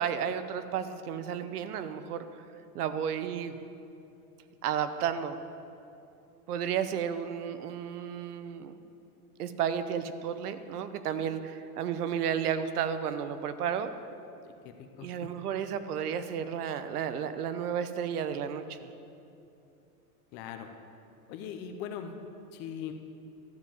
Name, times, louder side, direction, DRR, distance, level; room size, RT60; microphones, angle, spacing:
voice 1, 0.0-2.2 2.7-3.6 4.6-5.4 6.5-8.7 9.4-13.9 15.0-18.9, right 8 dB, 80° right, 11 dB, 1.0 m, -32 dB
voice 2, 14.8-15.3 20.3-20.7 21.3-22.1 22.5-22.9, left 8 dB, 25° left, 6 dB, 0.5 m, -40 dB
13.0 x 7.4 x 7.2 m, 2.7 s
supercardioid pair, 155°, 44 cm